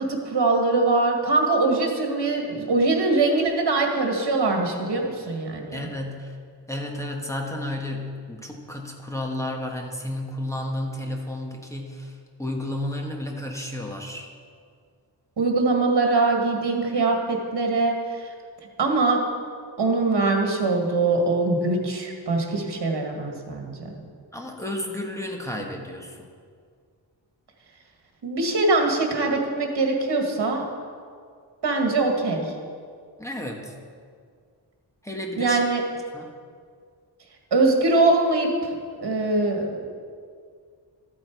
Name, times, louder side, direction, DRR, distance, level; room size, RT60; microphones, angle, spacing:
voice 1, 0.0-5.9 15.4-18.3 18.8-19.2 19.8-24.0 28.2-30.6 31.6-32.5 35.4-35.8 37.5-39.8, right 3 dB, 65° right, 2 dB, 1.8 m, -22 dB
voice 2, 5.7-6.4 6.7-14.3 24.3-26.3 33.2-33.7 35.0-35.6 36.1-36.3, left 1 dB, 5° left, 1 dB, 1.1 m, -32 dB
13.0 x 8.6 x 4.6 m, 2.1 s
wide cardioid pair, 150°, 43 cm